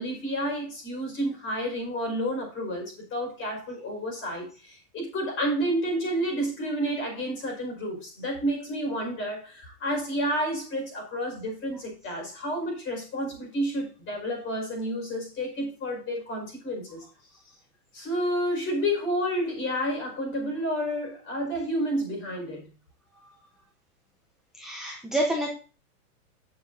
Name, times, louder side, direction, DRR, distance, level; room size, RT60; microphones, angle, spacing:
voice 1, 0.0-17.0 17.9-22.6, equal, 25° left, 1 dB, 5.3 m, -30 dB
voice 2, 24.5-25.5, right 1 dB, ahead, -2 dB, 0.7 m, -28 dB
16.0 x 6.8 x 2.7 m, 0.36 s
hypercardioid pair, 150°, 47 cm